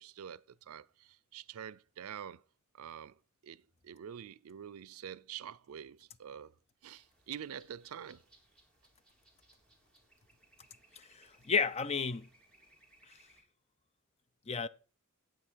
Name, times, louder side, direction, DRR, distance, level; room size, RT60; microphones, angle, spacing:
voice 1, 0.0-2.4 2.7-6.5 6.8-8.2, right 8 dB, 80° right, 0.4 m, -47 dB
sound 1, 6.8-13.4, right 1 dB, 5° left, 3.3 m, -66 dB
voice 2, 11.0-12.3 14.5-14.7, left 5 dB, 30° left, 0.5 m, -32 dB
12.5 x 8.4 x 4.5 m
head